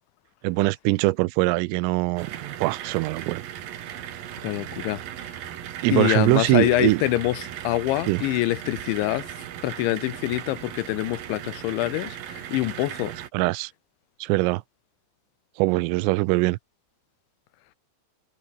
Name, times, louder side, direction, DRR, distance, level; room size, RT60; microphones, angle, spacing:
voice 1, 0.4-3.4 5.8-7.0 8.1-8.2 13.3-13.7 14.2-14.6 15.6-16.6, right 22 dB, 90° right, 3.3 m, -22 dB
sound 1, 2.2-13.3, right 11 dB, 60° right, 2.9 m, -37 dB
voice 2, 4.4-5.0 5.9-9.3 9.6-13.1, left 17 dB, 80° left, 2.9 m, -25 dB
omnidirectional pair, 5.8 m